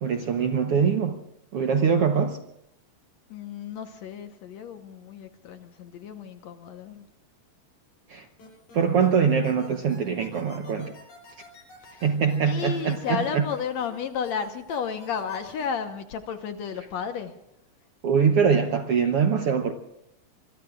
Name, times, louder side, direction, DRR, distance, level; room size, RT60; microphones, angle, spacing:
voice 1, 0.0-1.2 1.5-2.4 8.1-8.2 8.7-10.9 12.0-13.4 18.0-19.7, right 6 dB, 65° right, 5 dB, 1.5 m, -23 dB
voice 2, 3.3-7.1 11.8-12.0 12.4-17.3, left 7 dB, 65° left, 7 dB, 2.1 m, -33 dB
sound 1, 8.4-9.1 9.4-13.9 14.2-15.7, left 3 dB, 85° left, 9.3 m, -48 dB
26.0 x 22.5 x 2.5 m, 0.82 s
omnidirectional pair, 3.8 m